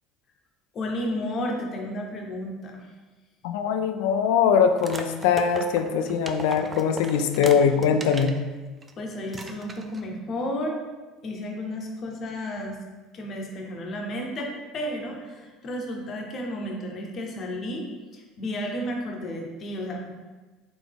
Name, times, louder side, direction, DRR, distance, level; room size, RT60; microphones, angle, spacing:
voice 1, 0.7-2.9 7.4-7.8 9.0-10.8 11.2-12.8 13.1-17.8 18.1-20.1, left 1 dB, 40° left, 1 dB, 0.9 m, -32 dB
voice 2, 3.4-8.3, left 7 dB, 85° left, 7 dB, 0.4 m, -22 dB
sound 1, 4.8-8.4 8.8-8.9 9.3-10.1, right 3 dB, 20° right, 0.4 m, -37 dB
4.1 x 3.4 x 3.5 m, 1.3 s
supercardioid pair, 110°, 0 cm